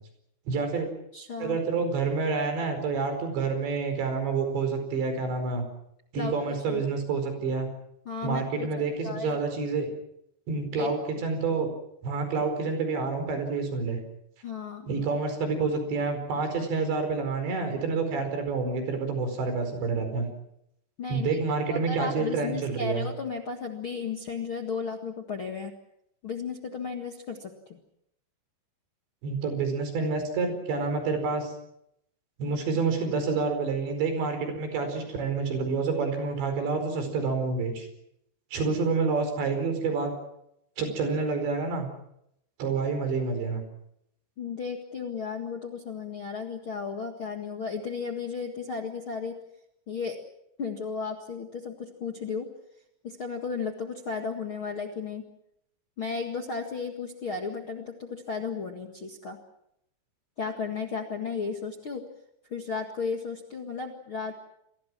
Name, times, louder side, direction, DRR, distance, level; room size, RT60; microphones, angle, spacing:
voice 1, 0.5-0.9 1.4-5.7 6.1-7.7 8.2-9.9 10.5-11.7 12.0-14.0 14.9-20.3 21.1-23.1 29.2-31.5 32.4-37.9 38.5-40.1 40.8-41.9 42.6-43.6, right 4 dB, 65° right, 7 dB, 6.9 m, -28 dB
voice 2, 1.1-1.6 6.1-6.3 6.7-6.8 8.0-9.4 10.7-10.9 14.4-14.9 21.0-21.4 21.7-25.7 26.2-27.8 44.4-49.3 49.9-50.2 50.6-52.5 53.0-55.2 56.0-59.4 60.4-62.0 62.5-64.4, left 5 dB, 60° left, 3 dB, 1.4 m, -34 dB
29.0 x 22.5 x 6.1 m, 0.78 s
omnidirectional pair, 5.5 m